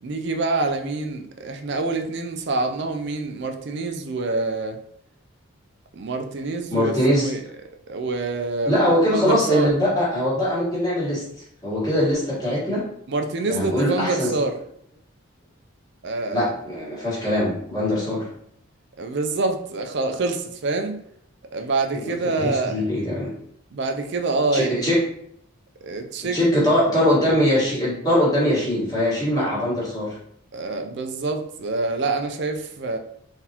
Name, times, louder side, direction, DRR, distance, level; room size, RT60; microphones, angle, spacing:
voice 1, 0.0-4.8 5.9-6.9 7.2-7.4 7.9-9.7 13.1-14.6 16.0-16.5 19.0-21.0 21.5-22.8 23.7-24.9 25.8-26.7 29.4-29.5 30.5-33.0, right 3 dB, 50° right, 5 dB, 0.4 m, -26 dB
voice 2, 6.7-7.3 8.6-11.2 11.6-12.8 13.4-14.3 16.3-18.3 21.9-23.3 24.5-25.0 26.3-30.1, left 1 dB, 15° left, -8 dB, 1.4 m, -22 dB
3.9 x 2.6 x 2.8 m, 0.70 s
head